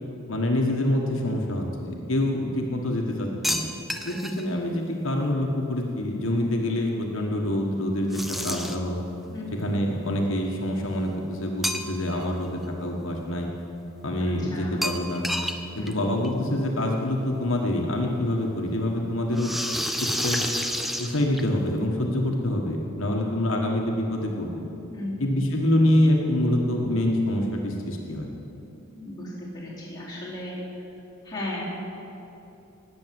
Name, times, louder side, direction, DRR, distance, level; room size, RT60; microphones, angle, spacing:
voice 1, 0.3-3.6 4.0-9.0 9.5-13.5 14.0-15.3 15.8-19.5 20.0-20.4 21.0-24.5 25.2-28.3, left 1 dB, 65° left, 0 dB, 1.6 m, -26 dB
sound 1, 3.4-4.4 8.1-9.0 11.6-12.2 12.6-12.7 14.8-15.6 15.9-16.0 16.2-16.3 17.5-17.6 19.3-21.7, equal, ahead, 0.6 m, -29 dB
voice 2, 14.4-14.9 15.7-16.1 24.9-25.4 28.9-30.6 31.2-31.6, left 1 dB, 20° left, -7 dB, 3.9 m, -36 dB
19.5 x 8.5 x 7.7 m, 3.0 s
head